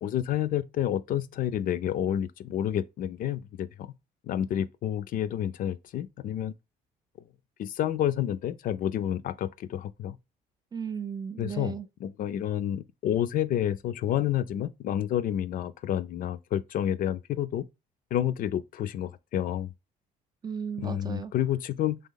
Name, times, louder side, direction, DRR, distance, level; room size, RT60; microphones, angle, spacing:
voice 1, 0.0-3.9 4.3-6.5 7.6-10.2 11.4-17.7 18.1-19.7 20.8-22.0, left 11 dB, 55° left, 0.4 m, -29 dB
voice 2, 10.7-11.9 20.4-21.3, right 7 dB, 25° right, 0.4 m, -35 dB
4.1 x 3.3 x 3.7 m
cardioid pair, 110°, 17 cm